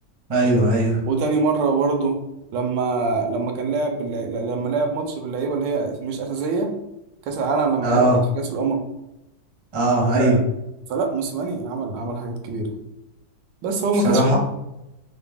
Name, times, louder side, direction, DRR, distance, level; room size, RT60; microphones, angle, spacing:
voice 1, 0.3-1.0 7.8-8.2 9.7-10.4 14.0-14.4, right 1 dB, 25° right, -3 dB, 0.6 m, -18 dB
voice 2, 1.1-2.2 2.5-6.7 7.3-8.1 8.4-8.8 10.0-10.4 10.9-12.7 13.6-14.4, right 4 dB, 80° right, 4 dB, 1.2 m, -24 dB
3.9 x 2.1 x 3.4 m, 0.90 s
omnidirectional pair, 2.0 m